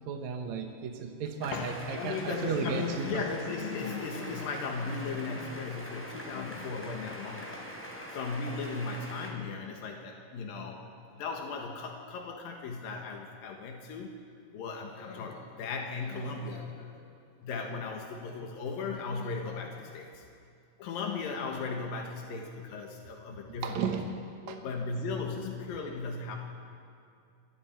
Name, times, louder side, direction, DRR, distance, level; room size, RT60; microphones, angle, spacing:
voice 1, 0.1-3.2 23.6-24.0 24.5-24.6, right 6 dB, 65° right, 3 dB, 2.2 m, -34 dB
voice 2, 1.4-7.7 8.1-10.8 11.1-14.1 14.5-17.0 17.4-20.3 20.8-23.9 24.5-26.4, left 4 dB, 90° left, 1 dB, 3.2 m, -37 dB
sound 1, 1.4-9.3, equal, 5° left, 3.2 m, -43 dB
27.5 x 22.5 x 4.5 m, 2.4 s
omnidirectional pair, 4.0 m